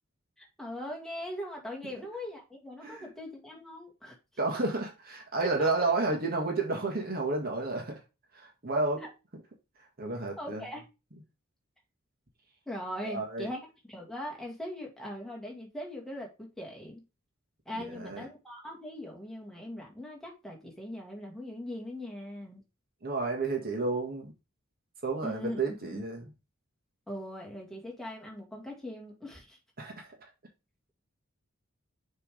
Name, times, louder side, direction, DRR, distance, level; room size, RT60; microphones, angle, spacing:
voice 1, 0.4-4.2 5.6-5.7 9.0-9.1 10.4-10.8 12.7-17.0 17.7-22.6 25.2-25.6 25.9-26.0 27.1-29.6, left 1 dB, ahead, 2.0 m, -40 dB
voice 2, 4.4-8.0 8.3-9.1 10.0-10.7 13.0-13.5 17.7-18.2 23.0-24.3 25.0-26.3 29.8-30.3, right 3 dB, 45° right, 1.7 m, -31 dB
6.7 x 3.6 x 5.0 m
head